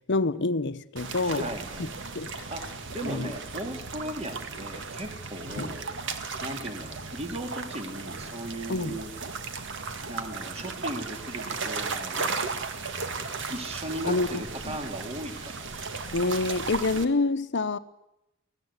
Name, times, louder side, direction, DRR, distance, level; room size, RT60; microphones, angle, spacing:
voice 1, 0.0-1.5 1.8-1.9 2.1-2.3 3.0-3.3 5.6-5.7 8.7-9.0 14.0-14.8 16.1-17.8, left 3 dB, 60° left, 1.0 m, -27 dB
sound 1, 1.0-17.0, right 4 dB, 60° right, 1.8 m, -35 dB
voice 2, 1.2-2.1 2.5-5.9 6.4-9.1 10.1-12.3 13.5-15.7, right 1 dB, 30° right, 2.6 m, -37 dB
24.0 x 17.0 x 8.2 m
head